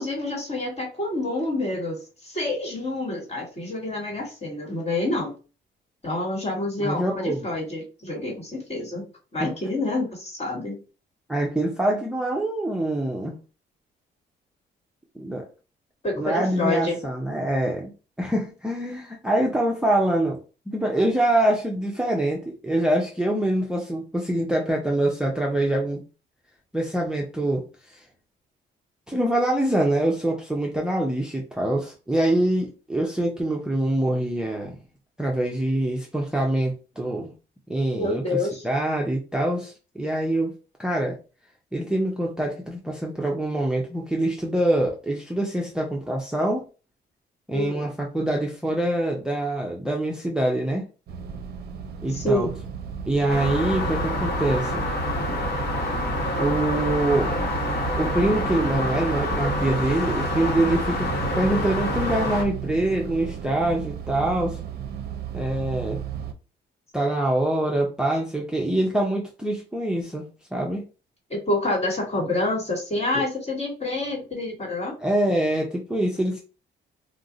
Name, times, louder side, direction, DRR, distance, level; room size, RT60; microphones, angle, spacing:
voice 1, 0.0-5.3 6.0-9.0 9.3-10.8 16.0-17.0 37.9-38.6 47.5-47.9 52.1-52.5 71.3-75.0, left 2 dB, 35° left, 0 dB, 1.4 m, -27 dB
voice 2, 6.8-7.5 9.4-9.5 11.3-13.3 15.2-15.4 16.2-17.9 18.2-20.4 20.7-26.0 26.7-28.0 29.1-34.8 35.2-37.3 37.7-38.4 38.6-40.5 40.8-41.1 41.7-46.6 47.5-50.9 52.0-52.5 53.1-54.8 56.4-57.3 58.0-64.6 65.3-66.0 66.9-70.2 70.5-70.8 73.2-73.3 75.0-76.4, right 1 dB, 5° right, -1 dB, 0.5 m, -25 dB
sound 1, 51.1-66.3, right 8 dB, 55° right, 0.5 m, -34 dB
sound 2, 53.3-62.4, left 1 dB, 55° left, 0.9 m, -27 dB
2.4 x 2.0 x 3.8 m, 0.34 s
cardioid pair, 95°, 19 cm